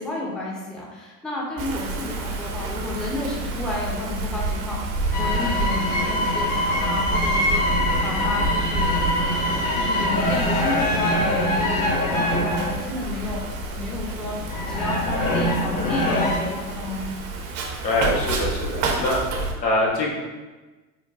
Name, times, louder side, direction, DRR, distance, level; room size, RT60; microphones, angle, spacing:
voice 1, 0.0-7.6 8.0-8.9 9.3-14.4 14.7-17.0, left 2 dB, ahead, -4 dB, 0.4 m, -31 dB
Wind, 1.6-19.5, right 2 dB, 55° right, 0.7 m, -30 dB
sound 1, 5.1-16.4, left 1 dB, 45° left, 0.8 m, -24 dB
voice 2, 17.8-19.2 19.6-20.2, left 1 dB, 90° left, -4 dB, 0.9 m, -23 dB
3.9 x 2.2 x 2.3 m, 1.2 s
hypercardioid pair, 80°, 49 cm